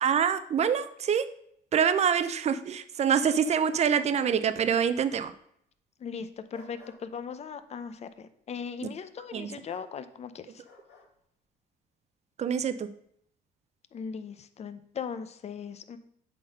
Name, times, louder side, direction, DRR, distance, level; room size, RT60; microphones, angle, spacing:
voice 1, 0.0-1.2 1.7-5.3 9.3-9.5 12.4-12.9, right 7 dB, 40° right, 12 dB, 0.6 m, -25 dB
sound 1, 3.2-4.3 6.5-6.9 9.6-9.9 10.6-11.0, left 4 dB, 80° left, 3.3 m, -51 dB
voice 2, 6.0-10.6 13.9-16.0, left 6 dB, 40° left, 11 dB, 0.7 m, -39 dB
8.4 x 4.1 x 5.3 m, 0.70 s
cardioid pair, 110°, 17 cm